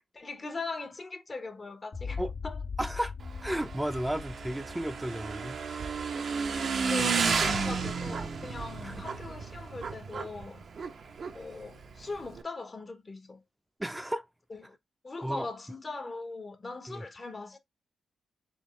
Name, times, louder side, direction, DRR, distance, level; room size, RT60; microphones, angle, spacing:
voice 1, 0.2-2.6 5.0-5.1 6.8-10.6 11.3-13.4 14.5-14.8 15.0-17.6, left 3 dB, 40° left, 1.0 m, -40 dB
sound 1, 1.9-6.2, left 5 dB, 60° left, 1.2 m, -40 dB
voice 2, 2.8-3.1 3.4-5.9 7.0-7.1 8.8-8.9 13.8-14.3 15.2-15.5 16.9-17.0, right 1 dB, 10° right, 0.6 m, -34 dB
Motorcycle / Engine, 3.2-12.4, right 5 dB, 60° right, 0.7 m, -33 dB
3.6 x 3.6 x 3.0 m
hypercardioid pair, 40°, 0 cm